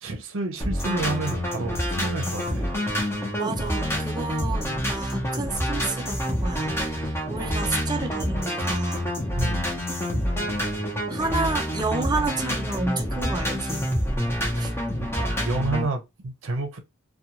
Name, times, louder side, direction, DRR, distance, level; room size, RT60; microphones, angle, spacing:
voice 1, 0.0-2.7 9.4-9.7 14.6-14.7 15.0-16.8, right 2 dB, 60° right, 0.7 m, -30 dB
sound 1, 0.6-15.8, equal, 10° left, 0.8 m, -27 dB
voice 2, 3.4-9.1 11.1-13.9 14.6-14.7, right 3 dB, 20° right, 0.5 m, -30 dB
2.4 x 2.3 x 2.9 m
head